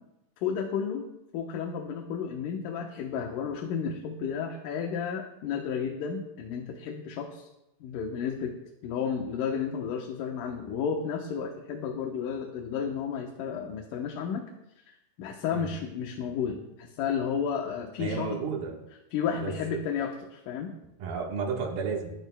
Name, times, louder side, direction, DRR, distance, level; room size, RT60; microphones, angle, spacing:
voice 1, 0.4-1.1 1.3-7.5 7.8-8.5 8.8-14.4 14.9-18.4 19.1-20.7, left 7 dB, 70° left, 2 dB, 2.5 m, -32 dB
voice 2, 18.0-18.8 19.4-19.5 21.0-22.1, right 5 dB, 85° right, 0 dB, 3.4 m, -32 dB
19.5 x 14.0 x 2.3 m, 0.90 s
omnidirectional pair, 4.1 m